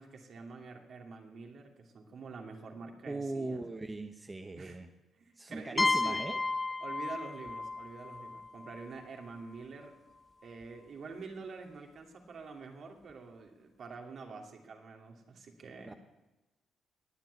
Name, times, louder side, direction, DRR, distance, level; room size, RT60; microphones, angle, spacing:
voice 1, 0.0-3.6 4.6-4.8 5.2-6.2 6.8-9.9 10.4-16.0, right 4 dB, 55° right, 2 dB, 2.5 m, -47 dB
voice 2, 3.1-4.9 5.4-6.4 15.8-15.9, right 2 dB, 20° right, 6 dB, 1.0 m, -39 dB
sound 1, 5.8-9.4, left 3 dB, 25° left, 0.8 m, -33 dB
20.0 x 7.8 x 8.1 m, 1.1 s
cardioid pair, 90°, 0 cm